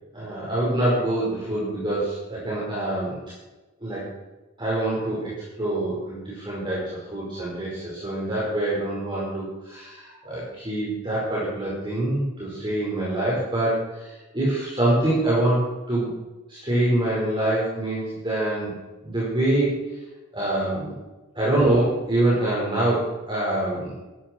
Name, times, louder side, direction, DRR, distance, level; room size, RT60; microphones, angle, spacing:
voice 1, 0.1-3.2 3.8-4.0 4.6-15.6 15.9-16.1 16.5-18.7 19.0-19.8 20.3-20.9 21.3-24.0, right 1 dB, 25° right, -7 dB, 5.0 m, -25 dB
14.0 x 13.0 x 4.6 m, 1.1 s
head